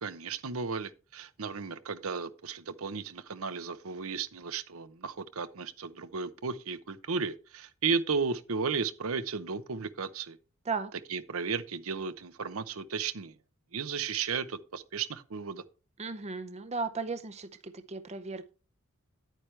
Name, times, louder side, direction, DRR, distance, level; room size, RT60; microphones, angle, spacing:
voice 1, 0.0-10.4 10.9-13.3 13.7-15.6, right 5 dB, 65° right, 0.8 m, -34 dB
voice 2, 16.0-18.5, right 4 dB, 30° right, 0.7 m, -36 dB
10.5 x 9.1 x 3.3 m
head